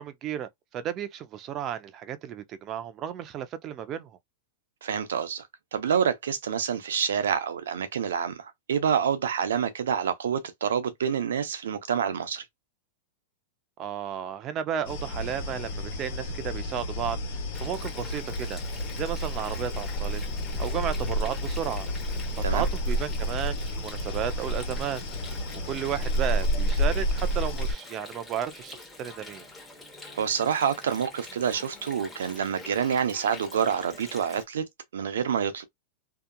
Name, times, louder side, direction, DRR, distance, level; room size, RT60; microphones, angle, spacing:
voice 1, 0.0-4.2 13.8-18.6 19.0-20.2 20.6-21.9 22.3-25.0 25.7-29.5, right 9 dB, 35° right, 0.5 m, -33 dB
voice 2, 4.8-5.4 5.7-12.4 22.4-22.6 30.1-34.6 34.9-35.6, right 7 dB, 90° right, 0.6 m, -27 dB
sound 1, 14.8-27.7, equal, 60° left, 1.1 m, -30 dB
Water, 17.5-34.4, left 2 dB, 10° left, 1.0 m, -46 dB
2.8 x 2.3 x 2.2 m
hypercardioid pair, 130°, 0 cm